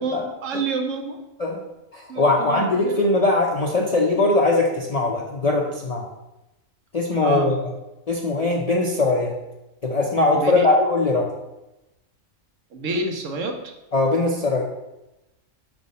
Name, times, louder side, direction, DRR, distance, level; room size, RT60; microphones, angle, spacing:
voice 1, 0.0-1.2 2.1-2.9 7.2-7.6 10.3-10.7 12.7-13.7, right 3 dB, 70° right, 4 dB, 1.1 m, -28 dB
voice 2, 1.9-6.1 6.9-7.6 8.1-9.3 9.8-11.3 13.9-14.6, left 2 dB, 50° left, -1 dB, 0.5 m, -20 dB
5.2 x 3.5 x 5.3 m, 0.97 s
omnidirectional pair, 1.4 m